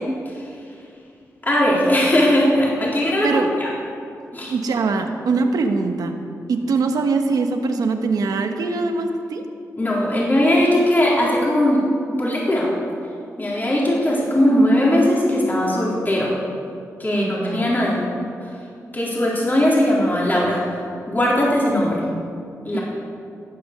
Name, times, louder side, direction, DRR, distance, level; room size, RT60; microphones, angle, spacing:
voice 1, 1.4-3.7 4.3-4.5 9.8-11.8 12.2-12.7 13.4-16.3 17.0-18.0 18.9-20.8 21.1-22.0 22.7-22.8, left 1 dB, 30° left, -5 dB, 3.8 m, -19 dB
voice 2, 4.5-6.2 6.5-9.5 17.1-17.7 22.7-22.8, right 4 dB, 80° right, 5 dB, 1.2 m, -22 dB
17.5 x 7.9 x 6.7 m, 2.5 s
cardioid pair, 65°, 6 cm